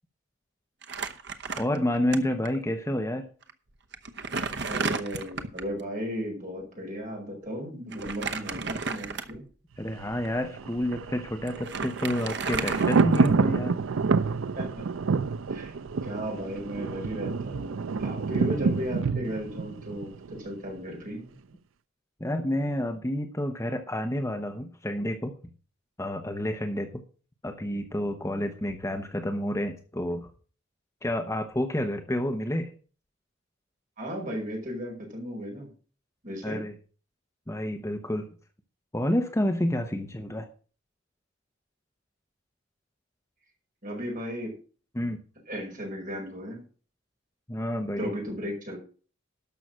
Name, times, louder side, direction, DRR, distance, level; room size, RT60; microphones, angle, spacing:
Crumpling crinkling, 0.8-2.2 2.4-2.6 3.4-3.5 3.9-5.7 7.9-9.5 10.1-10.3 11.1-11.2 11.5-13.6, right 4 dB, 60° right, 1.0 m, -33 dB
voice 1, 1.6-3.3 9.8-13.7 22.2-25.3 26.0-26.9 27.4-30.3 31.0-32.7 36.4-36.7 37.5-38.3 38.9-40.5 44.9-45.2 47.5-48.1, left 1 dB, 15° left, 5 dB, 0.9 m, -29 dB
voice 2, 4.7-9.4 14.6-14.9 15.5-21.3 34.0-35.7 36.2-36.6 43.8-44.5 45.5-46.6 48.0-48.8, equal, 45° right, 0 dB, 5.1 m, -35 dB
Thunder, 9.8-20.8 21.1-21.2, right 4 dB, 80° right, 0.5 m, -28 dB
12.5 x 6.0 x 6.3 m, 0.39 s
head